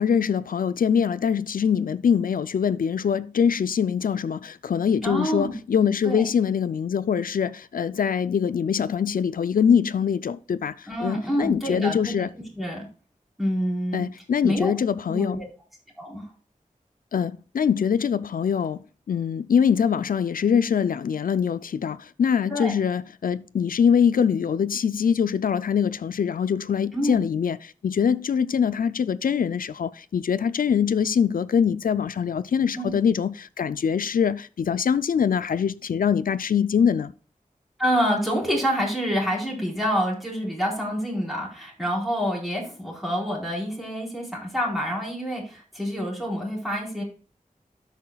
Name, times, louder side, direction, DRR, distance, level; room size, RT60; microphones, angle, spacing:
voice 1, 0.0-12.3 13.9-15.4 17.1-18.8 19.1-37.1, left 7 dB, 85° left, 0.4 m, -23 dB
voice 2, 5.0-5.5 6.0-6.2 10.9-12.3 12.5-12.9 13.4-14.0 14.4-14.7 15.1-15.4 16.0-16.2 22.5-22.7 26.9-27.2 32.7-32.9 37.8-47.0, equal, ahead, 4.1 m, -27 dB
13.5 x 5.8 x 2.3 m
wide cardioid pair, 55°, 14 cm